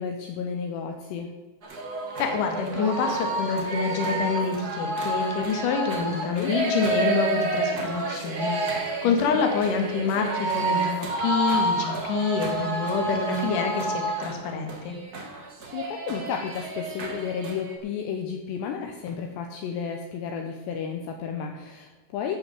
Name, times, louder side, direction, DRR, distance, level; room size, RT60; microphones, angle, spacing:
voice 1, 0.0-1.3 6.2-6.5 9.0-9.4 15.7-22.4, left 7 dB, 75° left, 3 dB, 2.8 m, -32 dB
sound 1, 1.6-17.7, right 2 dB, 80° right, 0.8 m, -29 dB
voice 2, 2.2-15.0, left 4 dB, 60° left, 4 dB, 2.6 m, -27 dB
15.0 x 5.7 x 7.5 m, 1.3 s
omnidirectional pair, 5.4 m